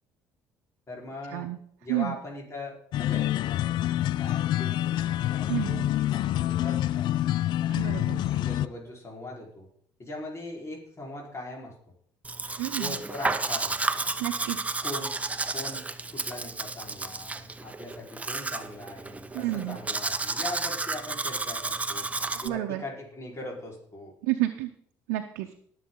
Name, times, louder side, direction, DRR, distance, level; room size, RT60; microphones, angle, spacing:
voice 1, 0.9-1.5 1.8-3.9 4.1-7.1 7.6-9.7 10.0-11.7 12.8-13.8 14.8-15.1 15.5-15.9 16.1-22.1 22.4-24.1, left 2 dB, 35° left, -2 dB, 4.6 m, -40 dB
sound 1, 2.9-8.7, left 13 dB, 65° left, 0.4 m, -27 dB
voice 2, 5.5-5.9 7.7-8.2 12.6-13.0 14.2-14.6 19.3-19.8 22.4-22.8 24.2-24.7 25.1-25.5, right 16 dB, 85° right, 4 dB, 0.7 m, -30 dB
Domestic sounds home sounds, 12.2-22.5, right 3 dB, 15° right, 0.9 m, -32 dB
20.0 x 7.6 x 3.9 m, 0.63 s
supercardioid pair, 70°, 8 cm